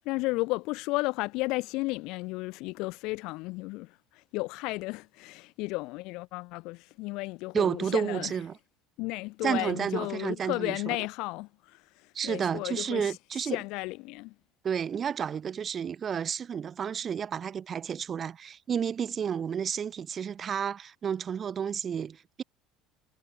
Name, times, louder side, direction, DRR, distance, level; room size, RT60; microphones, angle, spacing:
voice 1, 0.0-3.9 4.3-8.3 9.0-11.8 12.2-13.1 13.5-14.3, left 23 dB, 70° left, 0.9 m, -33 dB
voice 2, 7.5-8.6 9.4-11.0 12.1-13.6 14.6-22.4, right 7 dB, 30° right, 0.3 m, -31 dB
cardioid pair, 140°, 0 cm